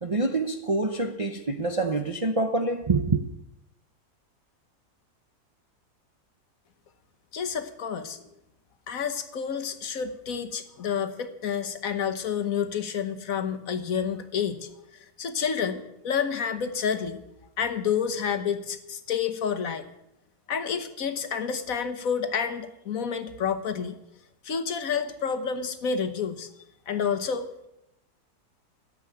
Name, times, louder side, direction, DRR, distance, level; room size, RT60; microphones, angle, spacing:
voice 1, 0.0-3.2, right 3 dB, 35° right, 0.6 m, -26 dB
voice 2, 7.3-8.2 8.9-17.2 17.6-19.8 20.5-24.0 24.4-26.5 26.9-27.7, left 7 dB, 60° left, 1.4 m, -29 dB
13.5 x 7.8 x 9.8 m
omnidirectional pair, 1.7 m